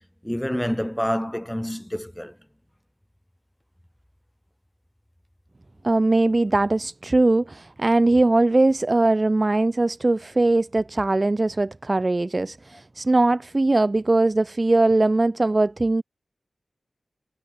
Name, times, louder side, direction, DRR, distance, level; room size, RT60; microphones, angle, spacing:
voice 1, 0.2-2.4, equal, 5° left, 5.0 m, -27 dB
voice 2, 5.8-16.0, right 2 dB, 30° right, 0.7 m, -20 dB
wide cardioid pair, 105°, 0 cm